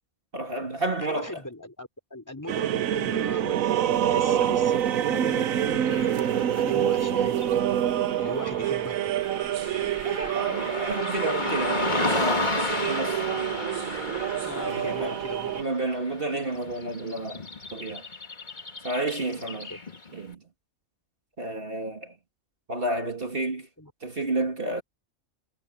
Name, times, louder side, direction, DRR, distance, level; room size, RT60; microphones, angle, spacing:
voice 1, 0.3-1.4 10.0-12.6 12.9-13.2 14.6-15.2 15.5-17.4 17.7-18.1 18.8-19.7 20.1-20.4 21.4-22.1 22.7-23.7 24.0-24.8, right 2 dB, 40° right, 2.4 m, -31 dB
voice 2, 1.0-3.6 4.0-4.8 5.1-7.6 8.2-9.2 14.4-15.6 19.3-19.8 23.8-23.9, left 1 dB, 15° left, 3.8 m, -39 dB
sound 1, 2.5-15.6, right 11 dB, 85° right, 1.1 m, -26 dB
Car passing by / Traffic noise roadway noise, 5.9-20.2, left 3 dB, 35° left, 2.1 m, -34 dB
omnidirectional pair, 1.4 m